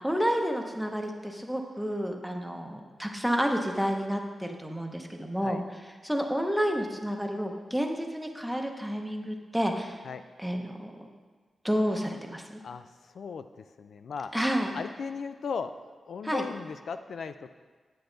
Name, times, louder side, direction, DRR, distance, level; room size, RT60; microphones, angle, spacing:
voice 1, 0.0-5.6 6.0-10.0 10.4-11.1 11.6-12.6 14.3-14.7 16.2-16.4, equal, ahead, 3 dB, 0.7 m, -30 dB
voice 2, 12.6-14.3 14.7-15.7 16.1-17.5, left 5 dB, 70° left, 10 dB, 0.3 m, -37 dB
9.3 x 9.0 x 3.9 m, 1.5 s
wide cardioid pair, 175°, 0 cm